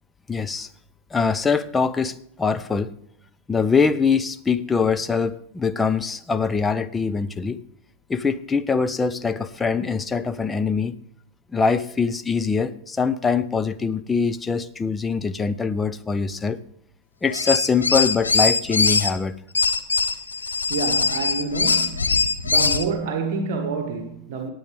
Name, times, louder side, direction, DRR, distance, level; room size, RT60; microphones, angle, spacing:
voice 1, 0.3-0.7 1.1-2.9 3.5-7.6 8.1-10.9 11.5-16.6 17.2-19.3, left 5 dB, 15° left, 0.6 m, -23 dB
sound 1, 17.3-19.1 19.5-22.9, left 4 dB, 80° left, 0.9 m, -21 dB
voice 2, 20.4-24.5, right 4 dB, 50° right, 1.3 m, -28 dB
19.0 x 7.8 x 3.4 m
figure-of-eight pair, 90°, 0 cm